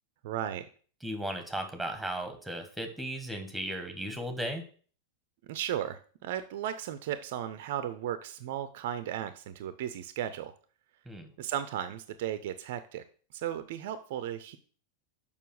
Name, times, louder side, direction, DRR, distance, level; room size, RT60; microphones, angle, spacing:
voice 1, 0.2-0.7 5.5-10.5 11.4-13.0 13.3-14.6, right 10 dB, 50° right, 12 dB, 0.6 m, -35 dB
voice 2, 1.0-4.6 11.1-11.3, right 1 dB, ahead, 7 dB, 1.8 m, -36 dB
6.8 x 5.5 x 6.3 m, 0.43 s
figure-of-eight pair, 90°, 0 cm